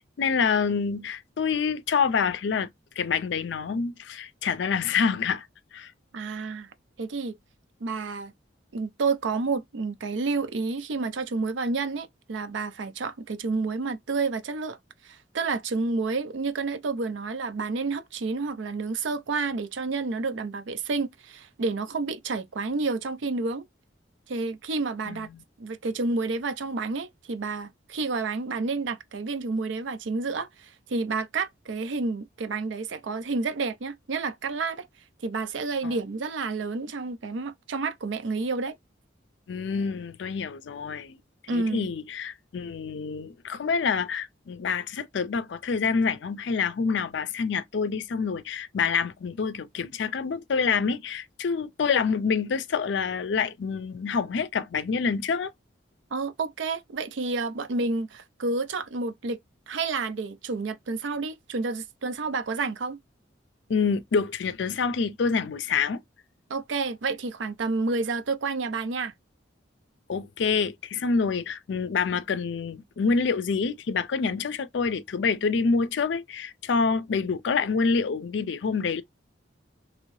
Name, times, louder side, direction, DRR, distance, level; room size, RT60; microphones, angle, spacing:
voice 1, 0.0-2.7 3.0-5.5 5.7-5.9 25.1-25.2 35.8-35.9 39.5-41.2 41.5-55.5 63.7-66.0 70.1-79.0, left 5 dB, 70° left, 0.4 m, -27 dB
voice 2, 6.1-6.7 7.0-7.3 7.8-8.3 8.7-14.8 15.0-23.6 24.3-25.3 25.6-34.9 35.2-38.7 41.5-41.9 56.1-59.4 59.7-63.0 66.5-69.1, right 3 dB, 75° right, 0.5 m, -30 dB
3.0 x 2.7 x 3.0 m
head